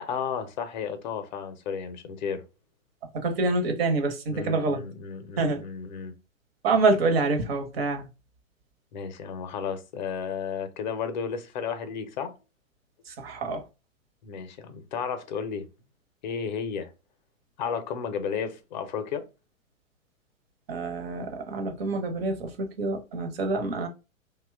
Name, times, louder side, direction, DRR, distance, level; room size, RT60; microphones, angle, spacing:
voice 1, 0.0-2.4 4.3-6.1 8.9-12.3 14.2-15.7 16.2-16.9 17.6-19.2, left 6 dB, 35° left, 0.6 m, -33 dB
voice 2, 3.2-4.8 5.4-5.6 6.6-8.1 13.1-13.6 20.7-23.9, right 3 dB, 45° right, 0.8 m, -26 dB
2.8 x 2.2 x 3.3 m
figure-of-eight pair, 120°, 41 cm